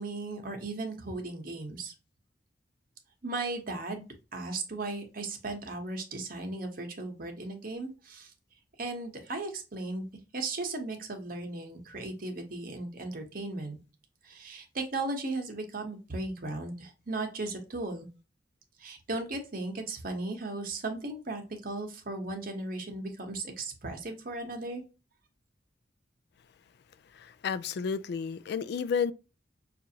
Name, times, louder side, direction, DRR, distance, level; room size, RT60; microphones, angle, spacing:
voice 1, 0.0-1.9 3.2-4.0 4.3-8.3 8.8-10.1 10.3-13.8 14.2-18.1 18.8-24.8, right 2 dB, 55° right, 1.0 m, -36 dB
voice 2, 27.1-29.1, left 6 dB, 65° left, 0.3 m, -31 dB
6.0 x 2.5 x 2.8 m
head